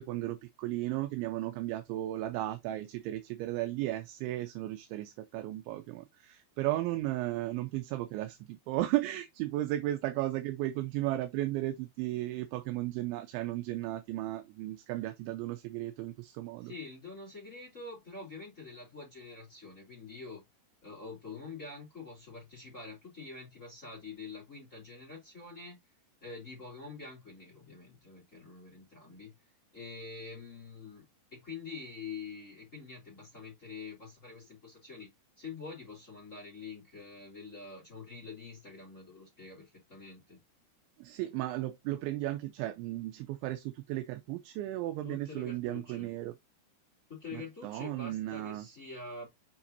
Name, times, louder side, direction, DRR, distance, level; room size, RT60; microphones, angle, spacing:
voice 1, 0.0-16.7 41.0-46.3 47.3-48.7, right 15 dB, 80° right, 3.1 m, -35 dB
voice 2, 16.6-20.4 20.8-25.8 26.2-29.4 29.7-31.1 31.3-35.1 35.4-40.4 45.0-46.1 47.1-49.3, left 4 dB, 15° left, 3.5 m, -46 dB
7.4 x 5.8 x 2.7 m
omnidirectional pair, 5.5 m